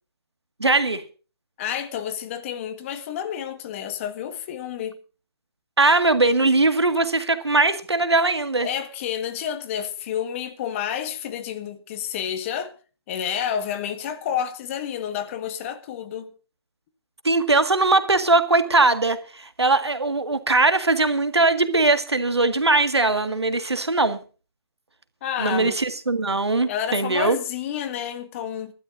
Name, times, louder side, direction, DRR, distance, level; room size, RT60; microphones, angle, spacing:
voice 1, 0.6-1.0 5.8-8.7 17.2-24.2 25.4-27.4, right 3 dB, 85° right, 1.9 m, -20 dB
voice 2, 1.6-5.0 8.6-12.7 13.1-16.3 25.2-25.8 26.7-28.7, left 9 dB, 30° left, 1.6 m, -29 dB
25.0 x 12.0 x 2.6 m
figure-of-eight pair, 140°, 13 cm